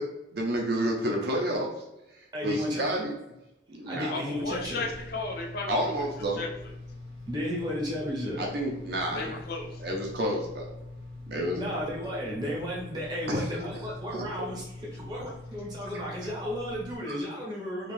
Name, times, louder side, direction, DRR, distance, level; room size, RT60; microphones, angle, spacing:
voice 1, 0.3-1.7 2.1-3.1 3.7-4.2 5.7-6.4 8.4-9.4 9.8-10.8 11.3-11.7 12.0-12.1 12.4-12.5 13.3-13.6 14.1-14.2 15.9-16.0 17.1-17.2, right 1 dB, 55° right, 0 dB, 0.5 m, -30 dB
voice 2, 2.3-3.0 3.9-4.9 7.3-8.4 11.5-17.9, equal, 20° right, -4 dB, 0.8 m, -33 dB
voice 3, 4.1-6.0 6.4-6.5 9.1-9.7, left 3 dB, 50° left, 1 dB, 0.5 m, -34 dB
sound 1, 4.4-17.0, left 2 dB, 85° right, 0.8 m, -43 dB
2.5 x 2.3 x 3.1 m, 0.90 s
head